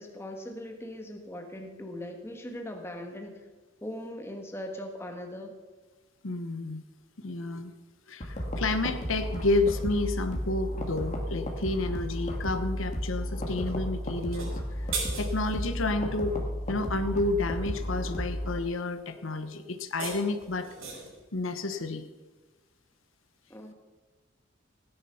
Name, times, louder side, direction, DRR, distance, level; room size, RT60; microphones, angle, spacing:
voice 1, 0.0-3.4 3.8-5.5 23.5-23.7, left 1 dB, 10° left, 4 dB, 1.4 m, -40 dB
voice 2, 6.2-6.8 7.2-7.7 8.1-14.6 15.2-16.4 16.7-20.7 21.3-22.1, left 2 dB, 80° left, 9 dB, 1.1 m, -30 dB
sound 1, 8.2-18.6, equal, 35° left, 2.2 m, -33 dB
sound 2, 14.2-15.8 19.7-21.2, right 4 dB, 90° right, 5.2 m, -38 dB
16.5 x 10.0 x 5.7 m, 1.3 s
head